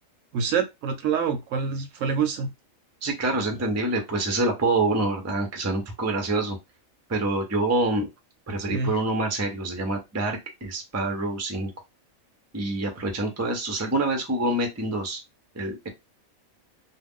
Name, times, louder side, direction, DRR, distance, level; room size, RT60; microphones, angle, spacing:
voice 1, 0.3-2.5 8.7-8.9, right 6 dB, 70° right, 0.9 m, -26 dB
voice 2, 3.0-6.6 7.1-8.1 8.5-11.7 12.5-15.2 15.5-15.9, right 2 dB, 20° right, 0.4 m, -26 dB
2.4 x 2.2 x 3.5 m
omnidirectional pair, 1.4 m